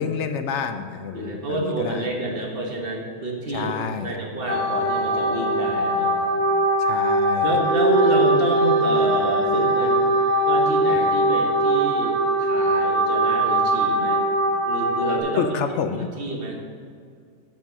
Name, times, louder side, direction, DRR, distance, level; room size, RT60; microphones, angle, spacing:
voice 1, 0.0-2.1 3.5-4.2 6.8-7.6 15.4-16.1, left 6 dB, 70° left, 8 dB, 0.9 m, -28 dB
voice 2, 1.1-3.7 4.0-6.2 7.4-10.2 10.5-14.2 14.6-15.5 16.2-16.6, right 1 dB, 45° right, 0 dB, 1.6 m, -28 dB
sound 1, 4.5-15.2, right 1 dB, 50° left, 1.6 m, -21 dB
8.6 x 6.2 x 6.2 m, 2.2 s
omnidirectional pair, 1.3 m